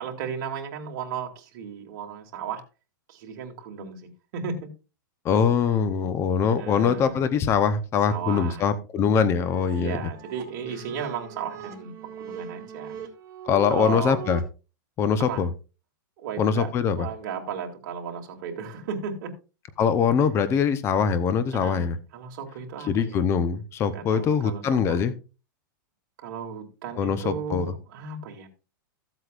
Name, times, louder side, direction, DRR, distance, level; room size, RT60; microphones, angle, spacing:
voice 1, 0.0-2.6 3.1-4.7 6.5-7.2 8.1-8.6 9.7-13.0 13.7-14.2 15.2-15.4 16.2-16.7 17.0-19.3 21.5-23.2 23.9-25.0 26.2-28.5, right 6 dB, 55° right, 2.7 m, -35 dB
voice 2, 5.2-10.0 13.5-14.4 15.0-15.5 16.4-17.1 19.8-22.0 22.9-25.1 27.0-27.7, left 6 dB, 25° left, 0.8 m, -23 dB
sound 1, 9.1-14.4, right 8 dB, 30° right, 2.2 m, -40 dB
14.5 x 8.0 x 2.5 m
supercardioid pair, 150°, 11 cm